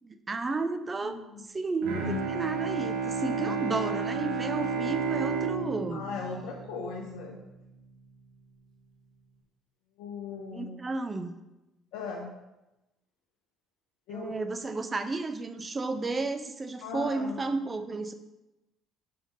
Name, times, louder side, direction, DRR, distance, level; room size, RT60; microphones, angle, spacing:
voice 1, 0.0-1.1 1.5-6.0 10.5-11.3 14.1-18.1, right 3 dB, 30° right, 9 dB, 0.7 m, -32 dB
voice 2, 0.9-1.5 3.2-3.6 5.9-7.4 10.0-10.8 11.9-12.3 14.1-14.5 16.8-17.7, left 4 dB, 80° left, 0 dB, 0.9 m, -39 dB
Bowed string instrument, 1.8-7.4, right 4 dB, 85° right, 1.2 m, -32 dB
5.7 x 5.2 x 5.3 m, 0.97 s
supercardioid pair, 75°, 0 cm